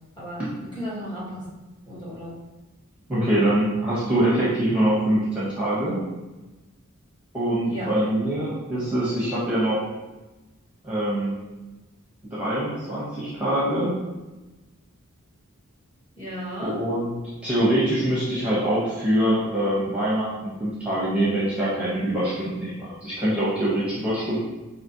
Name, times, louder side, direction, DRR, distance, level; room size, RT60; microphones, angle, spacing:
voice 1, 0.7-1.4 1.9-2.3 7.6-7.9 16.2-16.8, equal, 20° left, -8 dB, 1.3 m, -34 dB
voice 2, 3.1-6.0 7.3-9.8 10.8-11.4 12.3-13.9 16.6-17.1 17.4-20.3 20.6-24.4, right 1 dB, 5° right, -9 dB, 1.0 m, -24 dB
5.0 x 2.9 x 2.8 m, 1.1 s
head